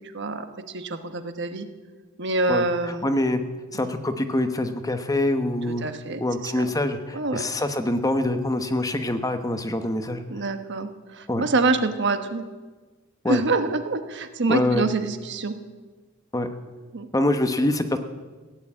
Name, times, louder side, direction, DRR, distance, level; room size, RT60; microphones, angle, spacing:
voice 1, 0.1-0.5 0.7-1.7 2.2-3.1 3.7-4.0 5.8-6.7 7.1-7.4 10.3-12.4 13.3-15.6 16.9-17.1, right 3 dB, 60° right, 9 dB, 1.2 m, -26 dB
voice 2, 2.5-3.4 3.7-5.9 6.2-10.2 11.3-11.4 13.2-13.4 14.5-14.8 16.3-16.5 17.1-18.0, left 1 dB, 15° left, 8 dB, 1.0 m, -25 dB
16.5 x 9.7 x 8.7 m, 1.3 s
head